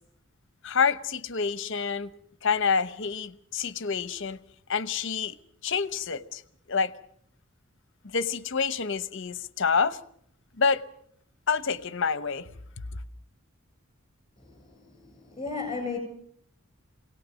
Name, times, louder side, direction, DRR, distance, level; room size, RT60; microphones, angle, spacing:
voice 1, 0.6-2.1 2.4-4.4 4.7-5.4 5.6-6.4 6.7-6.9 8.0-10.0 10.6-10.8 11.5-12.5 12.9-13.0, left 5 dB, 60° left, 0.9 m, -27 dB
voice 2, 14.4-16.0, left 4 dB, 25° left, 7.6 m, -35 dB
24.0 x 18.0 x 6.3 m
head